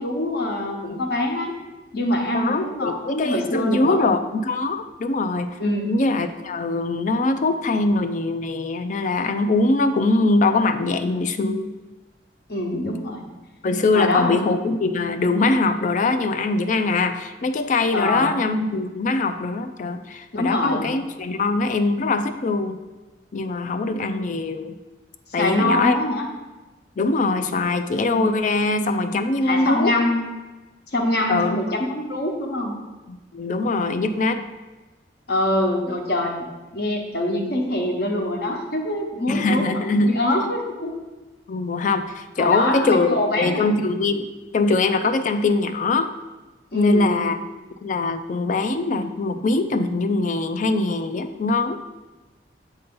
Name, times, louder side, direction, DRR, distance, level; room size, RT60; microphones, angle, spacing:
voice 1, 0.0-1.6 1.9-4.0 5.6-5.9 12.5-13.3 13.9-14.4 17.9-18.3 20.3-20.9 25.4-26.3 29.4-30.3 30.9-32.8 35.3-36.4 36.7-40.9 42.4-43.7 46.7-47.2, left 1 dB, 60° left, 1 dB, 1.0 m, -24 dB
voice 2, 2.3-11.7 13.6-22.8 23.3-24.8 25.3-26.0 27.0-29.9 31.3-31.6 33.1-34.4 39.3-40.1 41.5-44.3 44.5-46.1 46.7-47.4 47.8-51.8, left 3 dB, 45° left, 8 dB, 0.4 m, -22 dB
7.6 x 2.7 x 5.3 m, 1.2 s
head